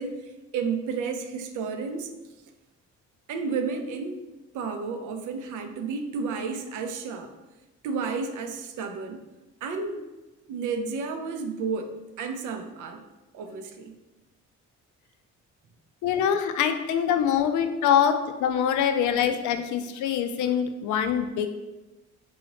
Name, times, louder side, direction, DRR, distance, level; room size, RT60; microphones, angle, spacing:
voice 1, 0.0-2.1 3.3-4.2 4.5-7.3 7.8-9.2 9.6-10.1 10.5-13.0 13.3-14.0, right 5 dB, 80° right, 6 dB, 0.5 m, -32 dB
voice 2, 16.0-21.5, left 8 dB, 80° left, 8 dB, 0.4 m, -24 dB
4.0 x 2.7 x 2.9 m, 1.1 s
cardioid pair, 90°, 30 cm